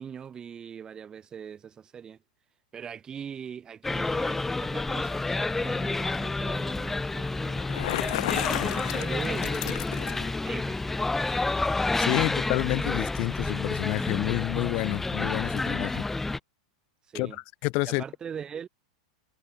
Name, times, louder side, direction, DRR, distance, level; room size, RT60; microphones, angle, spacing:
voice 1, 0.0-2.2 2.7-7.7 8.5-9.8 10.4-11.6 17.1-17.4 17.8-18.7, right 7 dB, 25° right, 2.7 m, -41 dB
sound 1, 3.8-16.4, left 3 dB, 10° left, 0.6 m, -29 dB
Bicycle, 7.5-10.4, left 18 dB, 65° left, 1.2 m, -33 dB
voice 2, 12.0-16.0 17.1-17.3 17.6-18.0, left 29 dB, 50° left, 0.3 m, -29 dB
hypercardioid pair, 110°, 3 cm